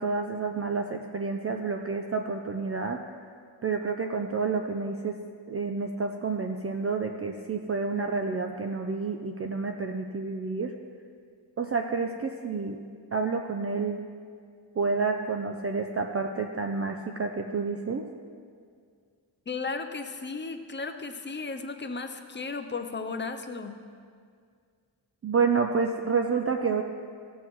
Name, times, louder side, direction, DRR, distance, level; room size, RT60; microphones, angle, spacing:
voice 1, 0.0-3.0 3.6-5.2 5.5-10.7 11.6-12.8 13.1-14.0 14.8-18.0 25.2-26.8, right 4 dB, 35° right, 3 dB, 0.4 m, -29 dB
voice 2, 19.5-23.8, left 4 dB, 25° left, 6 dB, 0.5 m, -35 dB
16.0 x 7.2 x 3.1 m, 2.2 s
wide cardioid pair, 150°, 46 cm